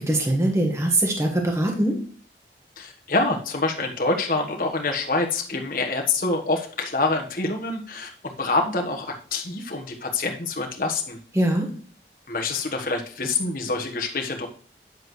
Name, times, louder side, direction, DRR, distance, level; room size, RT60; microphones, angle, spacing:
voice 1, 0.1-2.0 11.3-11.7, right 1 dB, 15° right, 1 dB, 1.4 m, -22 dB
voice 2, 2.8-11.2 12.3-14.5, left 3 dB, 50° left, 2 dB, 1.3 m, -26 dB
9.4 x 7.5 x 3.2 m, 0.44 s
head